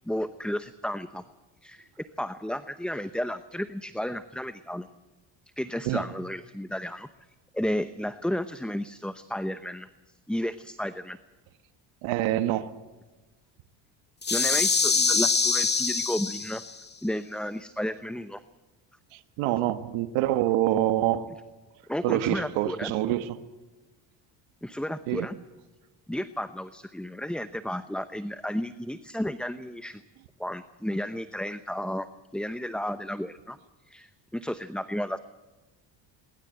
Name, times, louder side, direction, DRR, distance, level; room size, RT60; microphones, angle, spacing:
voice 1, 0.1-1.2 1.6-4.9 5.6-7.1 7.5-9.9 10.3-11.2 14.3-16.6 17.0-18.4 21.9-22.9 24.6-25.3 26.1-30.0 30.4-32.1 32.3-33.6 33.8-35.2, equal, ahead, 0.8 m, -32 dB
voice 2, 12.0-12.7 19.1-21.3 22.0-23.4 25.1-25.3, right 13 dB, 85° right, 1.4 m, -26 dB
sound 1, 14.2-16.8, left 4 dB, 20° left, 1.9 m, -24 dB
22.0 x 20.0 x 7.9 m
cardioid pair, 100°, 46 cm